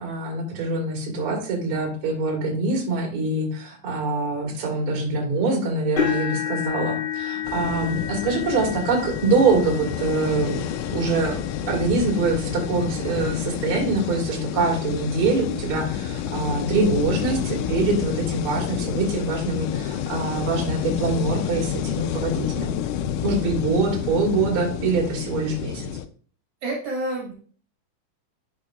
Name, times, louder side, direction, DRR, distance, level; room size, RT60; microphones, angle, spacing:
voice 1, 0.0-10.6 10.9-11.4 11.7-22.8 23.2-25.9, right 3 dB, 45° right, 1 dB, 2.2 m, -24 dB
sound 1, 6.0-14.0 14.6-14.9 15.3-15.4 16.8-16.9, left 8 dB, 35° left, 3.1 m, -32 dB
sound 2, 7.4-26.1, left 9 dB, 85° left, 1.8 m, -29 dB
voice 2, 26.6-27.3, right 1 dB, 65° right, -1 dB, 2.4 m, -28 dB
10.5 x 5.5 x 2.3 m, 0.43 s
omnidirectional pair, 4.1 m